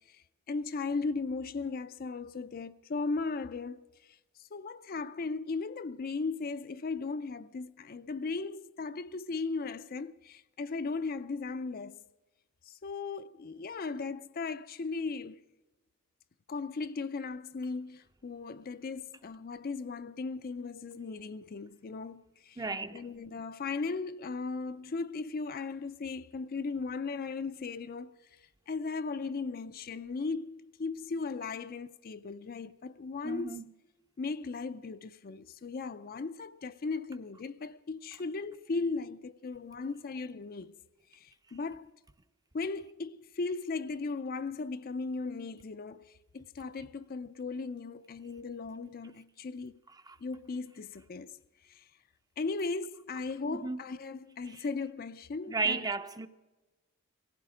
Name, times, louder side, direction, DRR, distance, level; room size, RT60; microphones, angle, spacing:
voice 1, 0.1-12.0 12.7-15.4 16.5-22.6 22.9-28.1 28.7-33.6 34.2-40.8 41.1-41.9 42.5-49.8 50.2-51.4 51.6-51.9 52.4-55.9, left 4 dB, 40° left, 0.4 m, -37 dB
voice 2, 22.6-23.0 33.2-33.7 50.1-50.2 53.4-53.8 54.5-54.6 55.5-56.3, right 4 dB, 15° right, 0.6 m, -34 dB
18.0 x 15.5 x 5.0 m
head